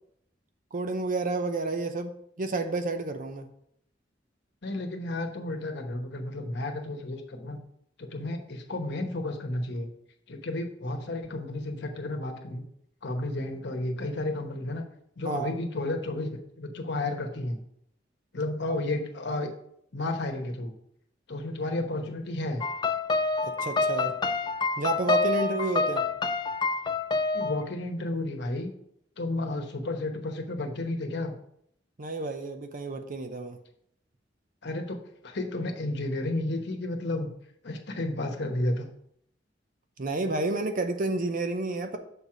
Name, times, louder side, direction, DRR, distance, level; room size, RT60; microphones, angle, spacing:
voice 1, 0.7-2.1 2.4-3.5 15.2-15.5 18.7-18.8 23.4-24.1 24.8-26.0 32.0-33.6 40.0-42.0, right 2 dB, 45° right, 7 dB, 0.7 m, -30 dB
voice 2, 4.6-7.6 8.0-9.9 10.3-12.6 13.0-14.8 15.2-17.6 18.3-19.5 19.9-20.7 21.3-22.6 27.3-28.7 29.2-31.4 34.6-37.3 37.6-38.9, left 2 dB, 65° left, 4 dB, 1.0 m, -32 dB
sound 1, 22.6-27.6, left 3 dB, 25° left, 0.4 m, -27 dB
6.8 x 4.5 x 4.9 m, 0.71 s
head